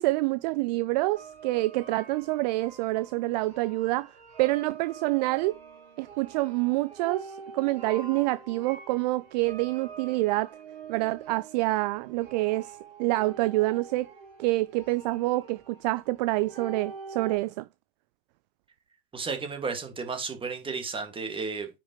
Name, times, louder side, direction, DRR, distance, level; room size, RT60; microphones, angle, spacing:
voice 1, 0.0-4.1 4.4-5.6 6.0-10.5 10.9-14.1 14.4-17.7, right 20 dB, 45° right, 0.4 m, -27 dB
sound 1, 1.1-17.4, right 4 dB, 70° right, 3.6 m, -46 dB
voice 2, 19.1-21.7, right 4 dB, 15° right, 2.3 m, -33 dB
9.6 x 5.7 x 3.2 m
figure-of-eight pair, 85°, 30 cm